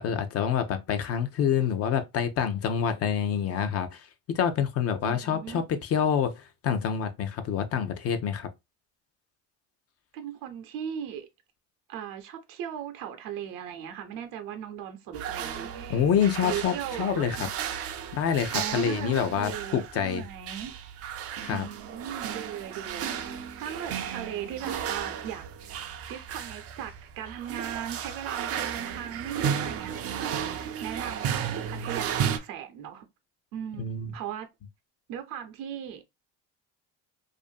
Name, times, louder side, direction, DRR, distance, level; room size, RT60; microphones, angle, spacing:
voice 1, 0.0-8.5 15.9-17.5 18.1-20.2 21.4-21.7 33.8-34.1, left 8 dB, 45° left, 0.5 m, -27 dB
voice 2, 5.0-5.6 10.1-11.3 11.9-16.1 16.4-17.9 18.5-20.8 21.5-25.4 25.7-33.1 33.5-34.5 35.1-36.0, right 9 dB, 75° right, 0.7 m, -38 dB
sound 1, 15.1-32.4, right 8 dB, 45° right, 0.4 m, -34 dB
2.6 x 2.5 x 2.2 m
cardioid pair, 115°, 34 cm